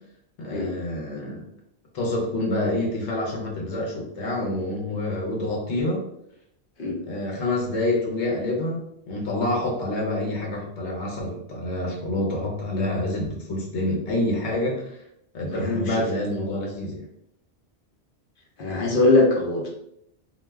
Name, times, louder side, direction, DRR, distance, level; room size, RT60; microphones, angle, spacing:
voice 1, 0.4-1.4 1.9-6.0 7.1-15.0 15.3-17.0, left 1 dB, 80° left, -2 dB, 1.1 m, -27 dB
voice 2, 15.6-16.0 18.6-19.7, left 2 dB, 55° left, -2 dB, 0.8 m, -21 dB
2.4 x 2.1 x 3.3 m, 0.75 s
omnidirectional pair, 1.1 m